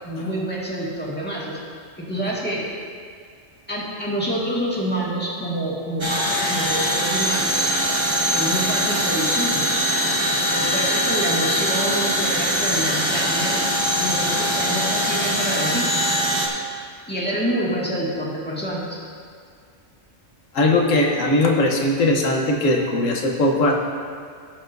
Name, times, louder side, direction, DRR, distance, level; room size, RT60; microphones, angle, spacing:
voice 1, 0.0-1.6 2.0-2.6 3.7-7.7 8.3-9.9 10.5-13.6 14.0-16.1 17.1-19.0, right 1 dB, 10° left, -6 dB, 1.8 m, -27 dB
sound 1, 6.0-16.5, equal, 25° right, 0.9 m, -22 dB
voice 2, 20.5-23.7, left 2 dB, 80° left, 1 dB, 1.4 m, -19 dB
16.0 x 6.9 x 2.6 m, 2.1 s
omnidirectional pair, 1.3 m